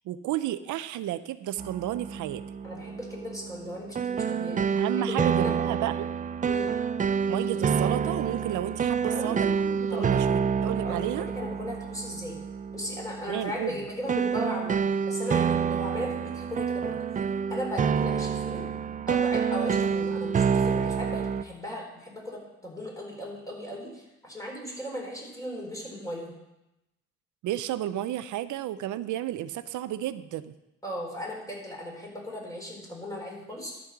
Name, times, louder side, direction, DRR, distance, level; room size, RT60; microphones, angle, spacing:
voice 1, 0.1-2.4 4.8-6.1 7.3-9.5 9.9-11.3 13.3-13.8 27.4-30.5, right 12 dB, 80° right, 14 dB, 0.6 m, -32 dB
sound 1, 1.6-21.4, right 6 dB, 25° right, 0.4 m, -28 dB
voice 2, 2.6-4.6 5.0-5.6 6.4-6.7 9.0-10.2 10.8-12.4 12.7-17.0 17.5-18.6 19.1-26.3 30.8-33.8, left 1 dB, 10° left, -2 dB, 4.1 m, -37 dB
12.5 x 5.4 x 6.0 m, 0.92 s
cardioid pair, 90°, 30 cm